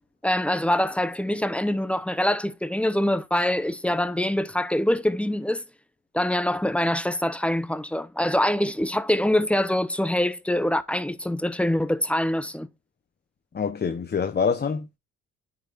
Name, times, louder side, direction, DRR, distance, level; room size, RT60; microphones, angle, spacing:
voice 1, 0.2-5.6 6.1-12.7, left 1 dB, 5° left, 0.7 m, -24 dB
voice 2, 13.5-15.0, left 6 dB, 35° left, 0.9 m, -26 dB
9.4 x 5.8 x 2.5 m
cardioid pair, 90°, 30 cm